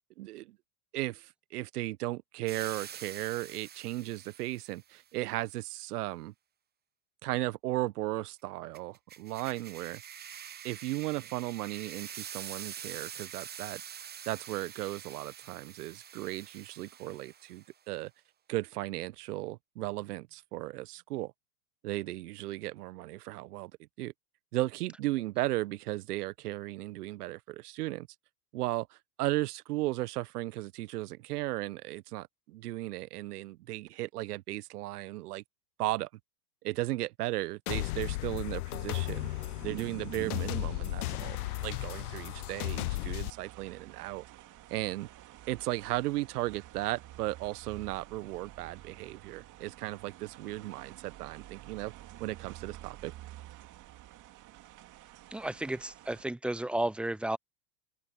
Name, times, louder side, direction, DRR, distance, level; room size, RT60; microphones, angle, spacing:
voice 1, 0.2-0.6 0.9-6.3 7.2-10.0 10.6-13.8 14.3-18.1 18.5-21.3 21.8-23.7 24.0-24.1 24.5-28.1 28.5-35.4 35.8-36.1 36.6-39.3 39.6-41.4 41.6-44.2 44.7-45.1 45.5-51.9 52.2-53.1, right 17 dB, 65° right, 1.3 m, -36 dB
sound 1, 2.5-4.8 8.7-17.7, right 9 dB, 20° right, 1.0 m, -46 dB
sound 2, 37.7-43.3, left 19 dB, 60° left, 0.7 m, -35 dB
sound 3, 39.1-56.2, right 15 dB, 40° right, 2.4 m, -49 dB
voice 2, 55.3-57.4, right 1 dB, ahead, 0.5 m, -33 dB
open air
hypercardioid pair, 95°, 49 cm